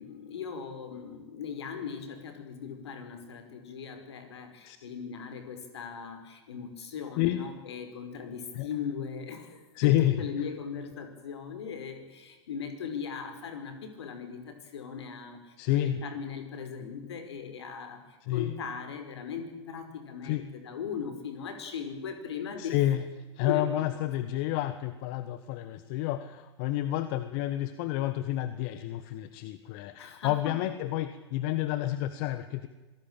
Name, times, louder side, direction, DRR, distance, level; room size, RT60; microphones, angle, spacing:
voice 1, 0.0-22.8 23.4-24.1 30.0-30.6, left 6 dB, 70° left, 8 dB, 5.1 m, -39 dB
voice 2, 9.7-10.2 15.6-16.0 18.2-18.5 20.2-20.4 22.6-23.0 23.4-32.7, left 14 dB, 45° left, 12 dB, 1.4 m, -29 dB
26.5 x 18.0 x 8.9 m, 1.2 s
figure-of-eight pair, 100°, 15 cm